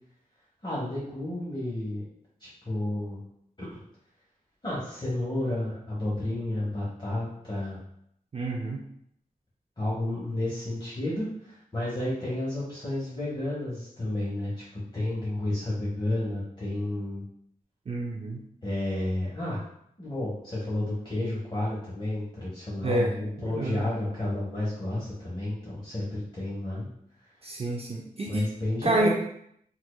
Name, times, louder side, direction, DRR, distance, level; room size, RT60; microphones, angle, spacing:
voice 1, 0.6-2.0 2.4-3.2 3.6-3.8 4.6-7.8 9.8-17.2 18.6-19.6 20.0-26.9 28.3-29.1, left 1 dB, 30° left, -8 dB, 1.1 m, -31 dB
voice 2, 8.3-8.8 17.9-18.4 22.8-23.1 23.4-23.9 27.4-28.5 28.8-29.1, right 2 dB, 40° right, 0 dB, 0.4 m, -28 dB
4.3 x 2.4 x 2.3 m, 0.71 s
wide cardioid pair, 105°, 15 cm